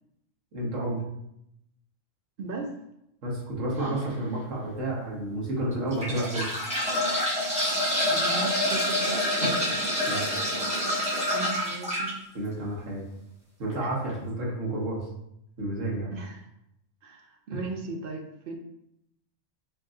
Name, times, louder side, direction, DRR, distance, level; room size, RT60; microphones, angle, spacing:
voice 1, 0.5-1.0 3.2-6.4 9.4-9.5 10.1-10.2 12.3-13.0 13.6-15.0 15.6-16.1 17.5-17.6, right 1 dB, 85° right, -4 dB, 1.5 m, -30 dB
voice 2, 2.4-2.8 8.1-9.2 11.3-12.2 16.1-16.4 17.0-18.6, right 3 dB, 60° right, 3 dB, 0.6 m, -36 dB
sound 1, 3.8-4.0 4.7-4.8 5.7-12.1 13.7-13.8 14.1-14.2, left 1 dB, 5° right, 1.3 m, -27 dB
4.5 x 3.8 x 2.5 m, 0.80 s
omnidirectional pair, 1.3 m